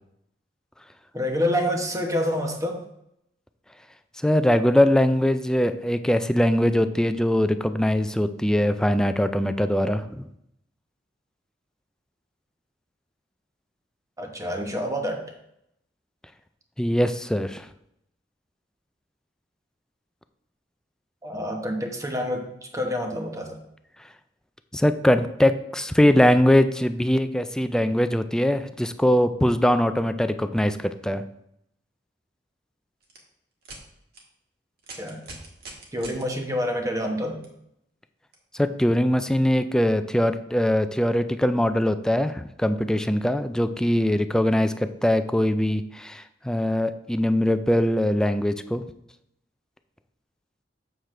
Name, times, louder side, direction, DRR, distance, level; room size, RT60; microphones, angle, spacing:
voice 1, 1.1-2.8 14.2-15.3 21.2-23.6 35.0-35.2 35.9-37.4, equal, 20° right, 3 dB, 1.1 m, -27 dB
voice 2, 4.2-10.2 16.8-17.7 24.7-31.2 38.5-48.8, left 1 dB, 5° left, 10 dB, 0.3 m, -22 dB
sound 1, 33.0-33.2 33.6-33.8 34.1-34.2 34.8-36.2 37.4-37.5 38.3-38.4, right 2 dB, 60° right, 1.6 m, -42 dB
7.6 x 6.8 x 3.2 m, 0.78 s
head